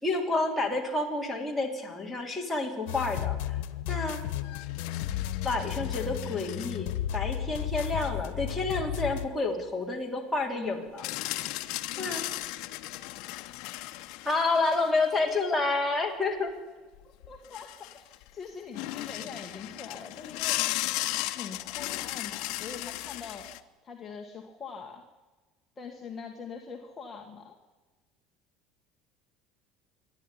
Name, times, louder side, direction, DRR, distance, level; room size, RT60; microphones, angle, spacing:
voice 1, 0.0-3.6 3.9-4.2 5.4-11.1 12.0-12.2 14.2-16.5, left 3 dB, 5° left, -2 dB, 3.3 m, -29 dB
sound 1, 2.9-9.3, left 12 dB, 85° left, 1.2 m, -33 dB
sound 2, 4.4-7.0 7.6-7.7 11.0-15.4 16.9-17.0 17.2-18.3 18.7-23.6, left 18 dB, 65° left, 1.0 m, -36 dB
voice 2, 17.3-20.8 21.3-23.5 23.8-25.0 25.8-27.6, left 5 dB, 20° left, 1 dB, 1.8 m, -43 dB
27.0 x 11.5 x 9.9 m, 1.3 s
cardioid pair, 155°, 0 cm